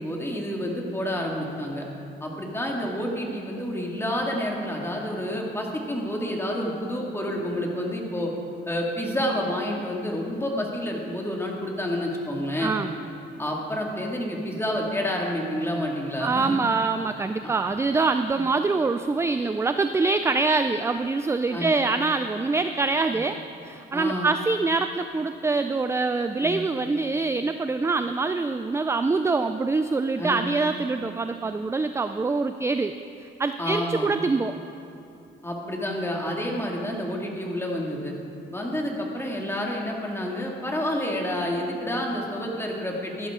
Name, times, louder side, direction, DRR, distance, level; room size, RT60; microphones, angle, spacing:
voice 1, 0.0-1.8 2.2-8.3 8.7-12.8 13.4-16.6 17.4-17.5 18.3-18.4 21.5-21.7 23.9-24.3 26.4-26.6 30.2-30.4 33.6-34.1 35.4-38.1 38.5-43.3, left 1 dB, 10° left, -1 dB, 2.2 m, -29 dB
voice 2, 12.6-12.9 16.2-34.5, right 3 dB, 15° right, 9 dB, 0.3 m, -25 dB
14.5 x 11.5 x 3.8 m, 2.7 s
cardioid pair, 90°, 20 cm